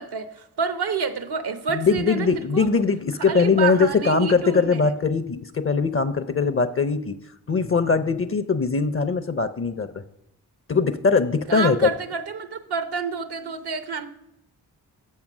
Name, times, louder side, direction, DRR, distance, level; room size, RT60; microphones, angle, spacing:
voice 1, 0.0-2.3 2.5-2.7 3.3-4.9 11.5-14.1, right 5 dB, 75° right, 11 dB, 0.9 m, -28 dB
voice 2, 1.7-7.2 7.5-10.0 10.7-11.9, left 4 dB, 35° left, 11 dB, 0.6 m, -21 dB
6.9 x 6.5 x 6.0 m, 0.80 s
cardioid pair, 50°, 39 cm